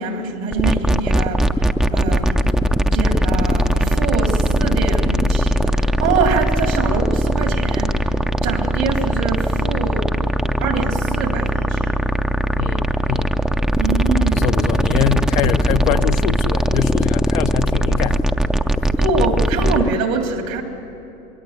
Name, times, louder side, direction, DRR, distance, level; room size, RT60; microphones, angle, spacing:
voice 1, 0.0-2.5 2.9-8.1 8.4-10.1 10.6-12.0 13.8-14.4 19.0-20.6, right 4 dB, 80° right, 3.3 m, -24 dB
sound 1, 0.5-19.9, equal, ahead, 0.5 m, -19 dB
voice 2, 12.6-13.3 14.3-18.2, left 11 dB, 80° left, 1.0 m, -23 dB
26.5 x 22.0 x 8.1 m
hypercardioid pair, 110°, 40 cm